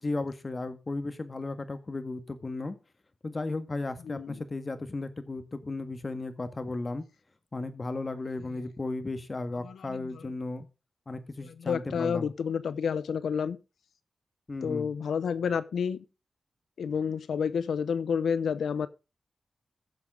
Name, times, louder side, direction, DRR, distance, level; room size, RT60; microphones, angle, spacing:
voice 1, 0.0-2.8 3.2-7.0 7.5-10.7 11.1-12.3 14.5-14.9, left 2 dB, 35° left, 1.8 m, -35 dB
voice 2, 4.1-4.4 9.6-10.3 11.4-13.6 14.6-16.0 16.8-18.9, left 6 dB, 85° left, 0.8 m, -30 dB
16.0 x 7.2 x 3.8 m
cardioid pair, 70°, 0 cm